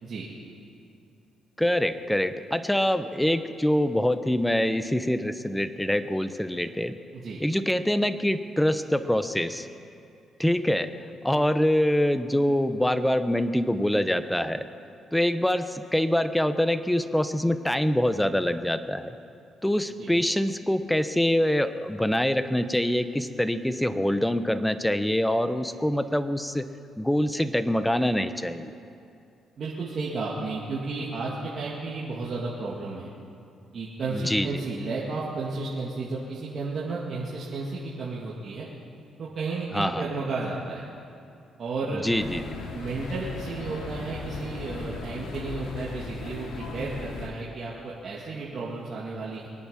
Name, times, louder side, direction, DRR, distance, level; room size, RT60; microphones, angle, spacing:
voice 1, 1.6-7.0 7.4-9.7 10.4-10.9 11.2-14.7 15.1-19.2 19.6-26.7 27.0-28.7 34.1-34.6 39.7-40.1 41.9-42.5, left 1 dB, 5° left, 11 dB, 0.8 m, -25 dB
voice 2, 29.6-33.1 33.7-38.7 39.2-40.8 41.6-42.0 42.7-49.5, right 3 dB, 55° right, -6 dB, 2.4 m, -33 dB
sound 1, 42.1-47.3, left 3 dB, 85° left, 2.4 m, -37 dB
23.5 x 9.3 x 5.8 m, 2.6 s
cardioid pair, 90°, 0 cm